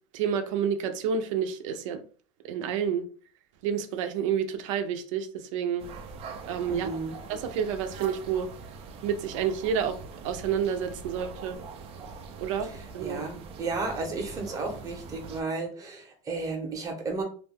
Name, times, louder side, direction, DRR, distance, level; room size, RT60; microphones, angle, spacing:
voice 1, 0.1-2.0 2.4-3.1 3.6-5.9 6.5-6.9 7.3-8.5 9.0-10.0 10.2-11.6 12.4-12.7 12.9-13.2, right 7 dB, 85° right, 0.5 m, -29 dB
sound 1, 5.8-15.4, right 4 dB, 40° right, 0.4 m, -43 dB
voice 2, 6.7-7.2 12.6-17.2, right 3 dB, 20° right, 0.8 m, -33 dB
2.5 x 2.2 x 3.3 m
supercardioid pair, 140°, 16 cm